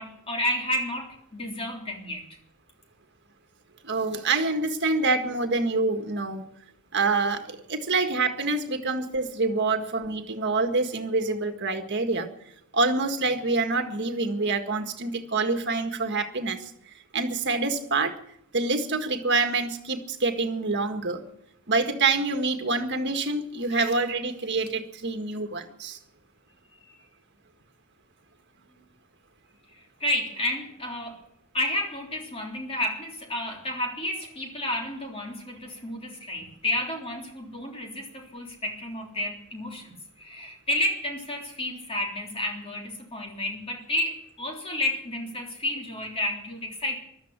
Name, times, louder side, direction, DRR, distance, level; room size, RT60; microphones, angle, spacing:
voice 1, 0.0-2.2 26.8-27.0 30.0-31.2 31.5-47.0, left 1 dB, 25° left, 1 dB, 3.5 m, -31 dB
voice 2, 3.8-6.5 6.9-12.3 12.7-16.7 17.1-18.2 18.5-21.2 21.7-26.0, right 3 dB, 50° right, 6 dB, 1.7 m, -26 dB
15.0 x 12.5 x 7.5 m, 0.75 s
head